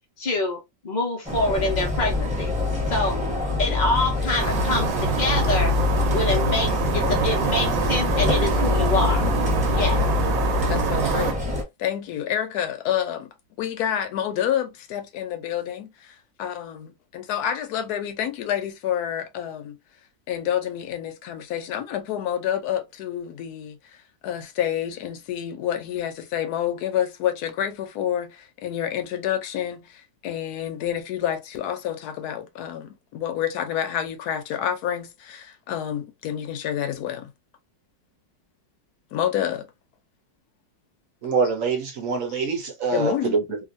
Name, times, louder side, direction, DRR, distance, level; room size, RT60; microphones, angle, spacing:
voice 1, 0.2-2.5 2.9-3.2 3.6-5.7 6.1-9.2 9.7-10.0, left 2 dB, 85° left, 0.4 m, -26 dB
sound 1, 1.2-11.6, left 3 dB, 5° right, 0.8 m, -25 dB
sound 2, 4.4-11.3, right 6 dB, 85° right, 1.3 m, -26 dB
voice 2, 10.7-11.4 11.8-19.8 20.3-37.3 39.1-39.7 42.9-43.4, left 10 dB, 70° left, 1.0 m, -28 dB
voice 3, 41.2-43.7, right 4 dB, 60° right, 0.9 m, -25 dB
2.9 x 2.5 x 2.5 m
omnidirectional pair, 2.0 m